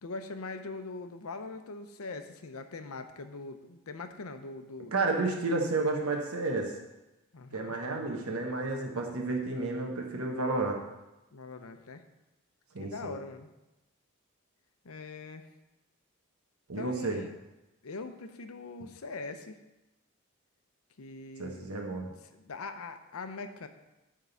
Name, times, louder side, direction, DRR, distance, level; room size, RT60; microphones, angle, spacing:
voice 1, 0.0-4.9 7.3-7.7 11.3-12.0 12.8-13.5 14.8-15.5 16.8-17.3 17.8-19.6 21.0-23.7, left 3 dB, 85° left, 8 dB, 0.7 m, -42 dB
voice 2, 4.9-6.7 7.5-10.8 12.7-13.2 16.7-17.2 21.4-22.1, right 3 dB, 85° right, 1 dB, 1.1 m, -31 dB
9.1 x 3.7 x 6.9 m, 1.0 s
head